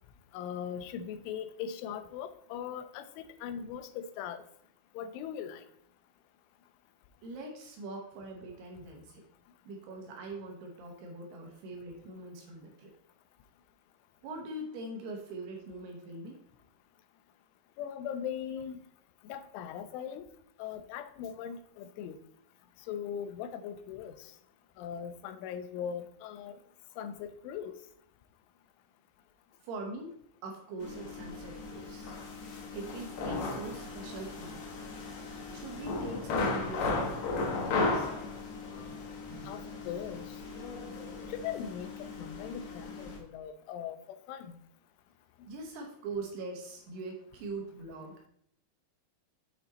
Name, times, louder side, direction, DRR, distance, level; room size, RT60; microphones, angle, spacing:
voice 1, 0.3-4.4 4.9-5.6 17.8-18.8 19.2-20.2 20.6-22.2 22.9-24.3 24.8-26.6 27.0-27.7 39.5-40.4 41.3-44.6, left 8 dB, 85° left, 10 dB, 3.2 m, -40 dB
voice 2, 7.2-9.2 9.7-12.9 14.2-16.4 29.6-30.1 30.4-32.2 32.7-34.6 35.5-38.1 45.5-48.3, right 2 dB, 70° right, 1 dB, 2.8 m, -42 dB
sound 1, 30.8-43.2, left 3 dB, 65° left, 2.4 m, -36 dB
7.7 x 5.9 x 4.1 m, 0.67 s
omnidirectional pair, 5.4 m